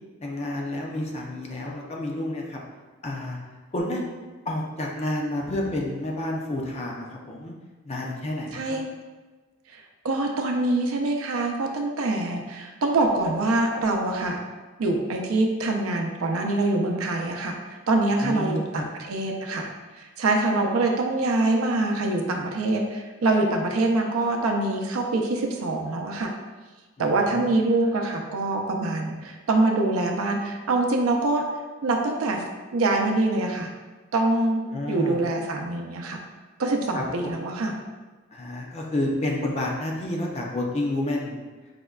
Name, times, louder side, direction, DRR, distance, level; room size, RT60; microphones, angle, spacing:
voice 1, 0.2-2.6 3.0-3.4 3.7-4.1 4.4-7.5 7.8-8.8 18.2-18.8 27.0-27.6 34.7-35.2 36.9-37.4 38.3-41.4, left 1 dB, 30° left, -1 dB, 0.4 m, -30 dB
voice 2, 8.5-8.8 9.7-14.4 14.8-17.6 17.9-19.7 19.9-26.3 27.0-31.4 31.8-32.4 32.7-33.7 34.1-34.6 34.9-36.2 36.6-37.7, right 2 dB, 85° right, 2 dB, 0.5 m, -24 dB
4.9 x 2.1 x 2.3 m, 1.3 s
head